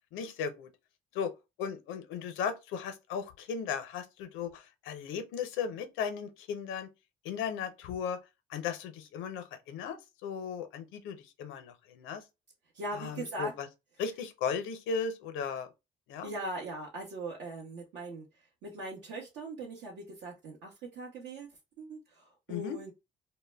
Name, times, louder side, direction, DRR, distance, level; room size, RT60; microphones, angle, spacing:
voice 1, 0.1-0.7 1.1-1.3 1.6-6.9 7.2-8.2 8.5-12.2 12.9-13.7 14.0-15.7 16.1-16.3 22.5-22.8, left 6 dB, 80° left, 0.5 m, -36 dB
voice 2, 12.7-13.5 16.2-18.2 18.6-22.0 22.5-22.9, right 2 dB, 75° right, 0.7 m, -40 dB
2.1 x 2.0 x 3.3 m
supercardioid pair, 55°, 20 cm